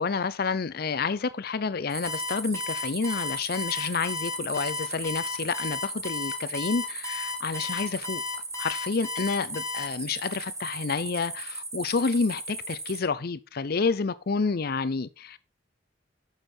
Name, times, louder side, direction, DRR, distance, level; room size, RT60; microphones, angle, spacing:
voice 1, 0.0-8.2 8.6-15.4, left 4 dB, 55° left, 0.6 m, -29 dB
sound 1, 1.9-13.0, right 3 dB, 15° right, 1.9 m, -37 dB
Alarm, 2.0-9.8, left 4 dB, 15° left, 4.4 m, -34 dB
11.5 x 6.5 x 4.4 m
head